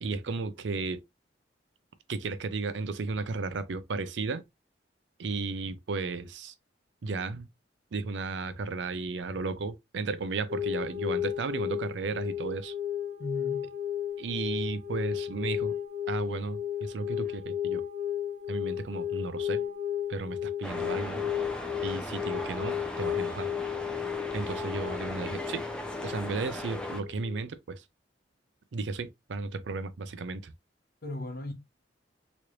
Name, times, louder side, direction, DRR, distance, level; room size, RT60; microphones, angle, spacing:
voice 1, 0.0-1.0 2.1-4.4 5.2-6.5 7.0-7.5 7.9-12.7 14.2-15.7 16.1-17.8 18.5-19.6 20.1-21.2 21.8-23.5 24.3-25.6 26.0-27.8 28.7-30.5, right 4 dB, 80° right, 0.5 m, -34 dB
sound 1, 10.5-27.4, left 10 dB, 45° right, 0.8 m, -34 dB
voice 2, 13.2-13.7 31.0-31.5, left 1 dB, 55° left, 0.9 m, -36 dB
sound 2, 20.6-27.0, equal, 5° left, 0.6 m, -38 dB
3.1 x 3.0 x 2.5 m
head